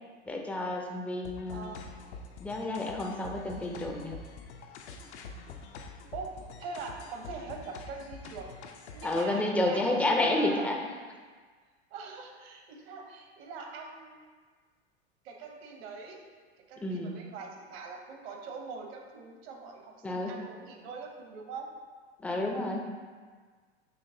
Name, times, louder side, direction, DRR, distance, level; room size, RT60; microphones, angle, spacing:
voice 1, 0.3-1.7 2.4-4.1 9.0-10.8 16.8-17.2 20.0-20.3 22.2-22.9, left 2 dB, 5° left, 1 dB, 0.3 m, -30 dB
sound 1, 1.2-9.2, left 4 dB, 75° left, 0.5 m, -46 dB
voice 2, 1.5-1.8 6.1-8.5 8.7-10.7 11.9-14.2 15.2-16.2 16.7-21.7, right 4 dB, 65° right, 2 dB, 0.8 m, -42 dB
5.8 x 3.0 x 2.6 m, 1.5 s
hypercardioid pair, 95°, 34 cm